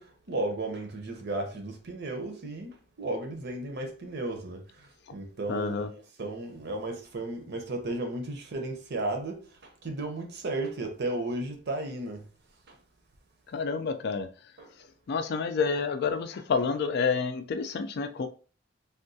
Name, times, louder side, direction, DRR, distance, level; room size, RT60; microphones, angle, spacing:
voice 1, 0.0-12.2 12.7-12.8 14.6-14.7, right 2 dB, 55° right, 0.7 m, -34 dB
voice 2, 5.5-5.9 13.5-14.3 15.1-18.3, left 5 dB, 55° left, 0.4 m, -29 dB
3.5 x 2.2 x 2.7 m
head